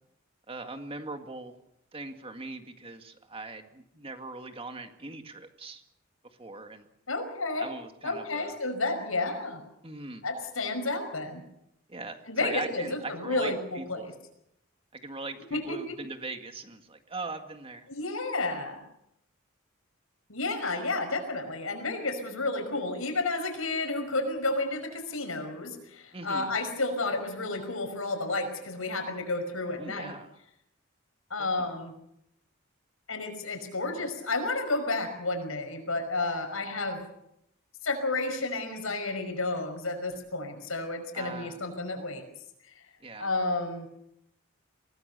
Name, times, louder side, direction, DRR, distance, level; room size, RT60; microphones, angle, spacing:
voice 1, 0.5-1.6 1.9-5.8 6.4-6.9 7.5-8.5 9.8-10.3 11.9-14.1 14.9-17.9 26.1-26.5 29.8-30.3 31.4-31.7 41.1-41.6 43.0-43.3, right 3 dB, 30° right, 6 dB, 2.0 m, -40 dB
voice 2, 7.1-7.7 8.0-9.6 10.2-11.4 12.3-14.1 15.5-16.0 17.9-18.8 20.3-30.1 31.3-31.9 33.1-37.0 37.8-42.2 43.2-43.9, left 2 dB, 85° left, 6 dB, 5.5 m, -31 dB
24.5 x 18.5 x 6.9 m, 0.79 s
head